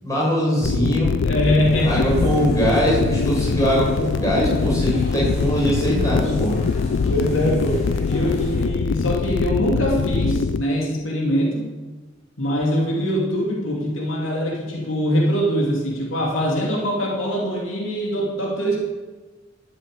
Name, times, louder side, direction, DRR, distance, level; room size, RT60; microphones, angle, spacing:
voice 1, 0.0-1.1 1.8-6.5, equal, 15° left, -4 dB, 5.8 m, -21 dB
sound 1, 0.6-10.6, left 5 dB, 60° left, 0.4 m, -23 dB
voice 2, 1.2-2.1 3.2-3.3 4.8-4.9 6.7-11.6 12.4-18.8, equal, 80° left, -2 dB, 2.8 m, -23 dB
sound 2, 1.7-8.7, left 1 dB, 35° left, 3.2 m, -37 dB
12.5 x 8.7 x 8.1 m, 1.3 s
head